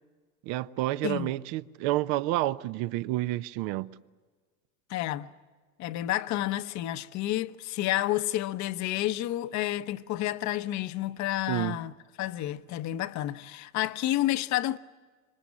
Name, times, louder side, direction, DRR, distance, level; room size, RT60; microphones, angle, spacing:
voice 1, 0.5-3.9 11.5-11.8, right 16 dB, 55° right, 0.9 m, -29 dB
voice 2, 4.9-5.3 5.8-11.9 12.2-14.8, left 14 dB, 40° left, 1.0 m, -30 dB
26.5 x 23.5 x 8.5 m
hypercardioid pair, 105°, 42 cm